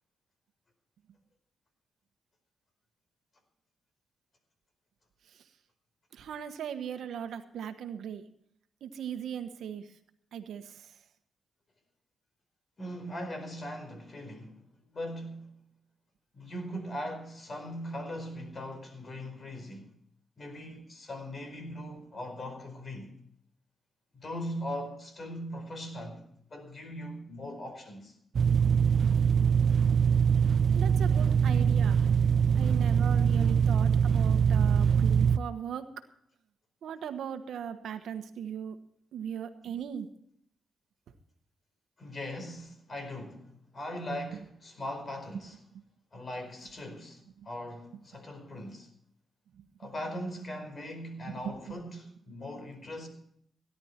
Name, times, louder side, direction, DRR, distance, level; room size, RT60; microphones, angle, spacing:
voice 1, 6.1-8.2 8.8-9.9 10.3-10.9 30.7-32.1 32.5-35.9 36.8-38.8 39.1-40.1 45.3-45.4 47.4-47.5 49.6-50.2 51.3-51.5 51.8-51.9, right 8 dB, 85° right, 1.2 m, -38 dB
voice 2, 12.8-14.6 14.9-15.5 16.3-19.9 20.4-23.1 24.1-28.1 42.0-45.6 46.1-48.9 49.8-53.1, equal, 45° left, 4.7 m, -40 dB
sound 1, 28.3-35.4, right 7 dB, 65° right, 0.5 m, -23 dB
17.0 x 11.0 x 4.4 m
cardioid pair, 70°, 0 cm